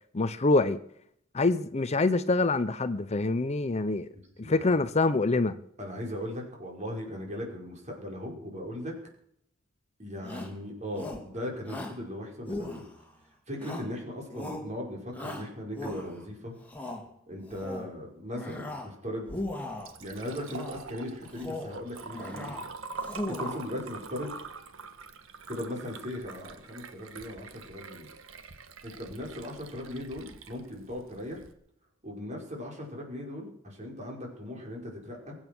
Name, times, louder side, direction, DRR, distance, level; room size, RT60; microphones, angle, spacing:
voice 1, 0.1-0.8 1.3-4.1 4.4-5.5, left 3 dB, 35° left, 0.7 m, -25 dB
voice 2, 4.1-4.8 5.8-9.0 10.0-12.8 13.5-16.5 17.3-19.3 19.6-19.7 20.0-22.6 23.3-24.4 25.5-28.1 28.8-31.4 32.0-35.4, left 1 dB, 35° right, 5.4 m, -38 dB
Shout, 10.2-10.6 11.0-11.3 11.6-12.0 12.5-13.1 13.6-14.0 14.3-14.7 15.1-16.2 16.6-17.0 17.5-17.9 18.3-18.9 19.2-19.9 20.5-20.8 21.3-21.8 22.1-22.6 23.0-23.7, left 1 dB, 10° left, 2.9 m, -38 dB
Liquid, 19.5-31.5, right 4 dB, 80° right, 1.5 m, -44 dB
23.0 x 9.0 x 6.2 m
head